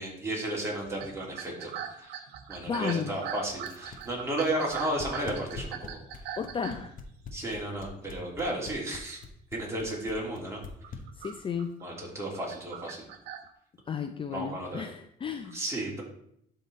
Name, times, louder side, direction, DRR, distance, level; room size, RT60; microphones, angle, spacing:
voice 1, 0.0-1.7 2.0-2.1 2.5-6.0 7.3-9.2 9.5-10.6 11.8-13.1 14.3-14.8 15.5-16.0, right 1 dB, 15° right, -3 dB, 2.8 m, -33 dB
sound 1, 0.8-7.4 8.0-8.4 8.8-9.1 9.5-9.7 10.3-13.5, right 9 dB, 80° right, 0.9 m, -42 dB
voice 2, 2.7-3.2 6.4-6.9 11.2-11.7 13.9-15.6, left 6 dB, 30° left, 7 dB, 0.5 m, -33 dB
sound 2, 3.6-11.5, left 6 dB, 55° left, 1.1 m, -43 dB
11.5 x 3.9 x 4.1 m, 0.70 s
cardioid pair, 110°, 17 cm